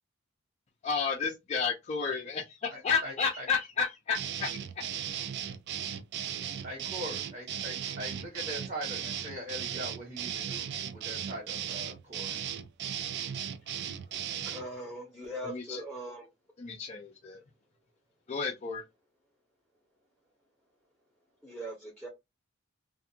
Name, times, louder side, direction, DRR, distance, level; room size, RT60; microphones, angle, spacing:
voice 1, 0.8-4.8 15.4-15.8 16.6-17.4 18.3-18.8, left 5 dB, 35° left, 0.4 m, -32 dB
voice 2, 2.7-3.5 6.6-12.4, equal, 35° right, 1.2 m, -42 dB
sound 1, 4.1-14.7, right 9 dB, 55° right, 0.3 m, -36 dB
voice 3, 14.5-16.3 21.4-22.1, equal, ahead, 0.8 m, -40 dB
2.5 x 2.4 x 2.7 m
head